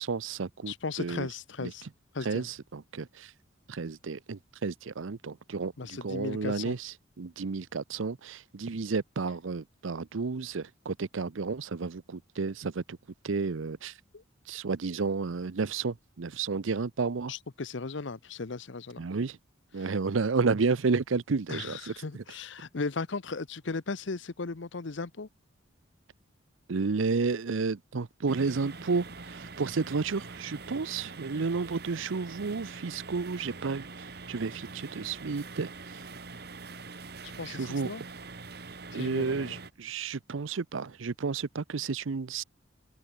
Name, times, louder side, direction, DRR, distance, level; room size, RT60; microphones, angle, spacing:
voice 1, 0.0-1.3 1.6-1.7 2.2-3.3 3.7-13.0 13.2-13.9 14.5-17.3 19.0-19.4 19.7-22.2 26.7-33.9 34.3-35.7 37.5-37.9 38.9-42.4, right 4 dB, 80° right, 0.6 m, -31 dB
voice 2, 0.7-1.8 2.1-2.5 5.8-6.8 14.1-14.2 17.3-19.0 19.8-19.9 21.5-25.3 37.2-38.0 38.9-39.6, left 4 dB, 65° left, 0.8 m, -36 dB
sound 1, 28.3-39.7, right 3 dB, 50° right, 1.8 m, -44 dB
open air
head